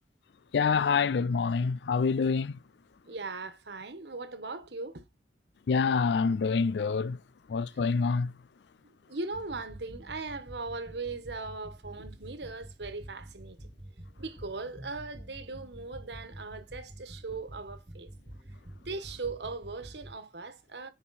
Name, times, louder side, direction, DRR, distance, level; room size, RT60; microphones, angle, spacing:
voice 1, 0.5-2.5 5.7-7.2 7.5-8.3, left 5 dB, 75° left, 0.4 m, -26 dB
voice 2, 3.1-5.0 9.1-13.6 14.2-18.1 18.8-20.9, right 3 dB, 75° right, 1.3 m, -39 dB
sound 1, 9.3-20.1, right 1 dB, 35° right, 1.5 m, -48 dB
10.0 x 4.8 x 4.2 m
head